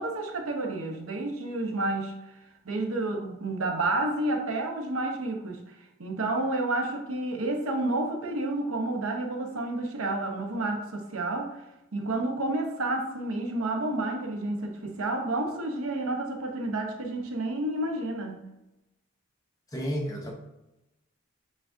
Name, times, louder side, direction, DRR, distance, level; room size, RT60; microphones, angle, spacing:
voice 1, 0.0-2.1 2.6-5.6 6.0-11.6 11.9-18.4, right 2 dB, 80° right, 3 dB, 0.7 m, -30 dB
voice 2, 19.7-20.3, equal, 15° left, 0 dB, 0.6 m, -31 dB
7.2 x 2.4 x 2.5 m, 0.95 s
head